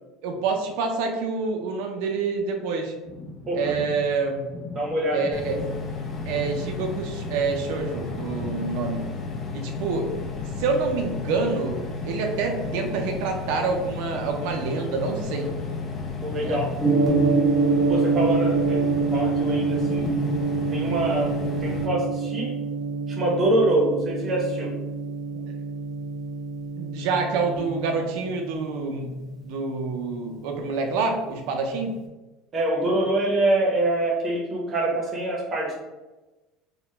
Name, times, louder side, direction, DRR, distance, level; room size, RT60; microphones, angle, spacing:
voice 1, 0.2-2.9 3.5-4.5 5.1-5.6 6.3-9.0 9.5-10.1 10.6-15.5 16.4-16.7 25.3-25.5 26.8-32.0, right 4 dB, 70° right, 3 dB, 0.4 m, -27 dB
sound 1, 3.0-10.7, left 2 dB, 50° left, 1.1 m, -41 dB
voice 2, 4.7-5.6 16.2-16.7 17.9-20.1 20.7-22.5 23.1-24.7 32.5-35.8, right 1 dB, 30° right, -1 dB, 0.7 m, -25 dB
sound 2, 5.3-21.9, left 4 dB, 30° left, 0.4 m, -33 dB
Gong, 16.8-31.0, right 4 dB, 15° left, 0.9 m, -26 dB
2.8 x 2.1 x 3.2 m, 1.1 s
cardioid pair, 150°, 0 cm